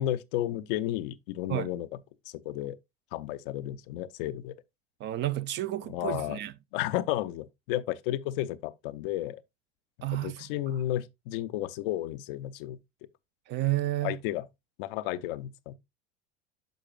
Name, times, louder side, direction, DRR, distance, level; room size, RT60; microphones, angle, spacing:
voice 1, 0.0-1.9 2.3-2.8 3.1-4.6 5.9-6.4 6.7-9.4 10.1-12.8 14.0-14.5 14.8-15.7, left 13 dB, 55° left, 0.6 m, -32 dB
voice 2, 5.0-6.5 10.0-10.5 13.5-14.2, right 15 dB, 35° right, 0.4 m, -31 dB
9.2 x 6.6 x 2.3 m
figure-of-eight pair, 70°, 33 cm